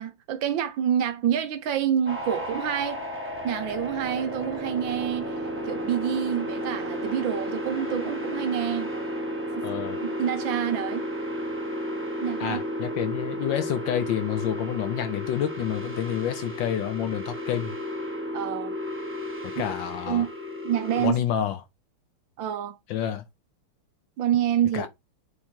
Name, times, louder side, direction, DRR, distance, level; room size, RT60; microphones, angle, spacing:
voice 1, 0.0-3.1 3.4-8.9 10.2-11.1 12.2-12.6 18.3-18.8 20.1-20.3 20.6-21.2 22.4-22.8 24.2-24.9, right 9 dB, 70° right, 1.4 m, -27 dB
sound 1, 2.0-21.1, equal, 5° right, 1.1 m, -33 dB
voice 2, 9.6-10.0 12.4-17.7 19.4-20.3 21.0-21.6 22.9-23.2 24.7-24.9, left 10 dB, 70° left, 1.2 m, -29 dB
8.4 x 3.0 x 4.4 m
omnidirectional pair, 2.4 m